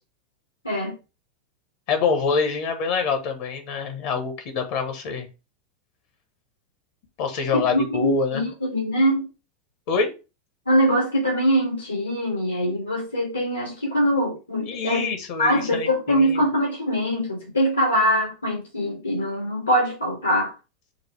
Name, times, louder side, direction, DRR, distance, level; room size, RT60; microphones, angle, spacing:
voice 1, 1.9-5.3 7.2-8.4 9.9-10.1 14.7-16.4, left 5 dB, 55° left, 1.2 m, -25 dB
voice 2, 7.5-9.2 10.7-15.1 15.4-20.5, equal, 90° left, 2.3 m, -23 dB
6.3 x 2.2 x 3.2 m
hypercardioid pair, 85°, 0 cm